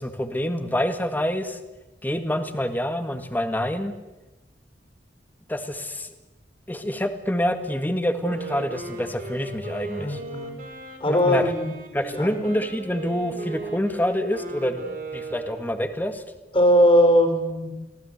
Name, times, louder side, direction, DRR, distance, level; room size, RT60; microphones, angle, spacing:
voice 1, 0.0-1.6 2.0-3.9 5.5-6.1 6.7-10.2 11.1-11.4 11.9-16.2, equal, 10° left, 7 dB, 1.9 m, -27 dB
Wind instrument woodwind instrument, 8.2-16.1, right 3 dB, 50° right, 4.6 m, -37 dB
voice 2, 10.0-10.6 11.0-11.7 12.1-12.3 16.5-17.7, equal, 30° left, 6 dB, 4.7 m, -19 dB
26.0 x 18.0 x 8.2 m, 1.1 s
head